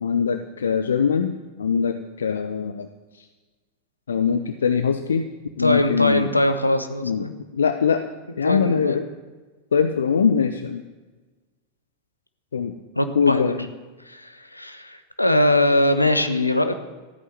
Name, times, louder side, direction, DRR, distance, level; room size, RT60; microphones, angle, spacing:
voice 1, 0.0-2.9 3.2-3.3 4.1-5.3 5.6-6.3 7.0-7.3 7.5-8.0 8.4-9.0 9.7-10.8 12.5-12.7 13.2-13.7, left 6 dB, 70° left, 9 dB, 0.7 m, -22 dB
voice 2, 5.6-7.3 8.4-9.0 13.0-13.5 14.1-16.7, left 1 dB, 85° left, 9 dB, 1.1 m, -21 dB
14.0 x 9.3 x 7.6 m, 1.3 s
figure-of-eight pair, 90°, 0 cm